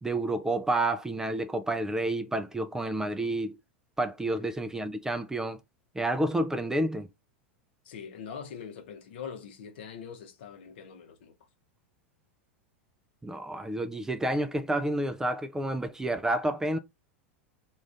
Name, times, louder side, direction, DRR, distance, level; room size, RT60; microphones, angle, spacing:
voice 1, 0.0-3.5 4.0-5.6 6.0-7.1 13.2-16.8, right 1 dB, 10° right, 0.3 m, -29 dB
voice 2, 7.8-11.3, left 7 dB, 60° left, 0.8 m, -43 dB
2.4 x 2.4 x 3.3 m
figure-of-eight pair, 90°, 7 cm